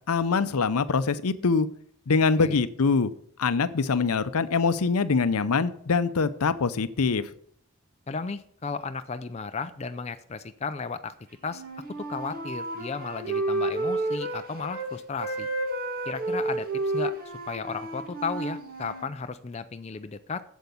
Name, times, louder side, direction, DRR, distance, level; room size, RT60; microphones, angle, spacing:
voice 1, 0.1-1.7 2.1-3.1 3.4-7.2, left 4 dB, 85° left, 14 dB, 0.6 m, -24 dB
voice 2, 8.1-11.1 11.4-11.6 12.0-15.5 16.1-17.1 17.5-20.4, left 4 dB, 30° left, 9 dB, 0.4 m, -34 dB
Wind instrument woodwind instrument, 11.5-14.9 15.2-19.1, right 2 dB, 40° right, 1.8 m, -31 dB
7.8 x 7.2 x 7.0 m, 0.63 s
head